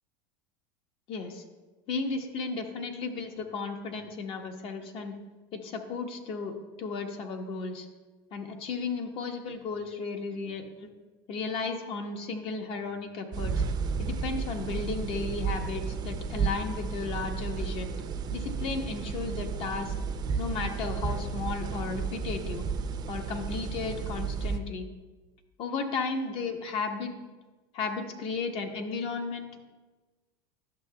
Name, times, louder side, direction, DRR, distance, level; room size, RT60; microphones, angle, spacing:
voice 1, 1.1-1.4 1.9-5.2 5.5-7.9 8.3-10.9 11.3-13.5 14.0-17.9 18.3-19.9 20.4-22.6 23.1-24.9 25.6-27.1 27.7-29.6, left 4 dB, 50° left, 4 dB, 1.1 m, -34 dB
sound 1, 13.3-24.6, right 5 dB, 35° right, 0.6 m, -33 dB
11.0 x 6.6 x 2.3 m, 1.2 s
supercardioid pair, 110°, 12 cm